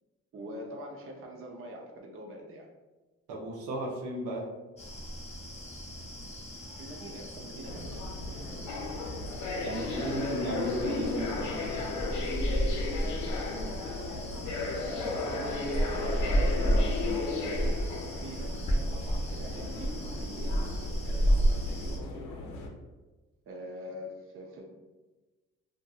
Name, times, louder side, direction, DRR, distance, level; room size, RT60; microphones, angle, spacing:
voice 1, 0.3-2.7 6.7-8.1 9.6-11.1 14.7-17.8 18.2-20.6 21.1-22.1 23.5-24.6, equal, 45° right, 0 dB, 0.5 m, -43 dB
voice 2, 3.3-4.5 9.6-11.9, right 1 dB, 85° right, -2 dB, 0.6 m, -35 dB
sound 1, 4.8-22.0, equal, 20° left, 0.6 m, -32 dB
sound 2, 7.7-22.7, left 3 dB, 80° left, 0.5 m, -35 dB
2.6 x 2.6 x 2.3 m, 1.2 s
cardioid pair, 90°, 30 cm